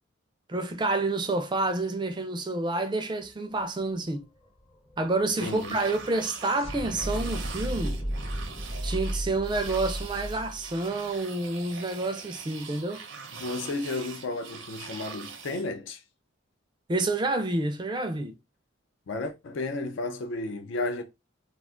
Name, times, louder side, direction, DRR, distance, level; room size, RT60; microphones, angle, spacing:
voice 1, 0.5-4.3 5.0-8.0 8.8-13.0 16.9-18.3, right 2 dB, 25° right, 0.4 m, -29 dB
sound 1, 3.2-3.3 3.6-11.8, equal, 30° left, 0.6 m, -35 dB
sound 2, 5.3-15.7, right 5 dB, 70° right, 0.6 m, -43 dB
voice 2, 5.4-5.8 13.4-16.0 19.1-21.0, left 2 dB, 70° left, 0.4 m, -33 dB
2.4 x 2.3 x 3.5 m
head